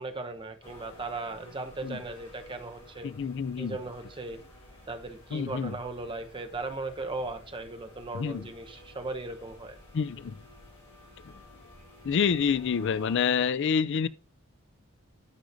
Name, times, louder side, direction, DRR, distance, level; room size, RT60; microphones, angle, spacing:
voice 1, 0.0-3.1 3.6-4.4 4.9-9.8, right 2 dB, 25° right, 0.9 m, -37 dB
sound 1, 0.6-13.2, left 1 dB, 25° left, 2.9 m, -52 dB
voice 2, 3.0-3.8 5.3-5.7 8.1-8.5 9.9-10.3 11.3-11.4 12.0-14.1, left 6 dB, 55° left, 0.4 m, -27 dB
12.5 x 5.1 x 2.6 m
head